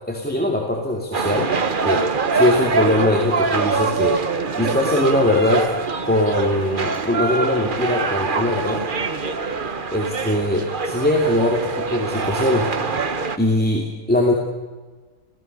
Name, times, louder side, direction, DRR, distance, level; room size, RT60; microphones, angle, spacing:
voice 1, 0.1-1.5 1.8-2.0 2.3-4.2 4.6-5.7 6.0-8.8 9.9-12.7 13.4-14.3, left 1 dB, 5° left, 1 dB, 2.7 m, -21 dB
sound 1, 1.1-13.4, right 4 dB, 40° right, 1.2 m, -24 dB
27.0 x 17.5 x 6.8 m, 1.3 s
omnidirectional pair, 1.4 m